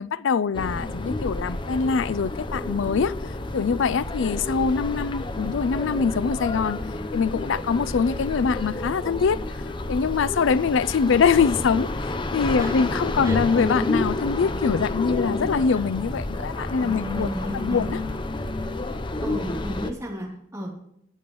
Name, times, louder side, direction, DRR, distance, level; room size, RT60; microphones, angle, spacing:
voice 1, 0.0-3.1 3.5-6.8 7.1-9.4 9.9-11.9 12.3-17.3 17.5-18.0, left 5 dB, 75° left, 0.4 m, -23 dB
sound 1, 0.5-19.9, left 2 dB, 25° left, 0.6 m, -30 dB
voice 2, 12.6-12.9 13.2-13.4 16.8-17.9 19.2-20.7, equal, 15° right, 3.0 m, -33 dB
17.5 x 7.0 x 3.1 m
head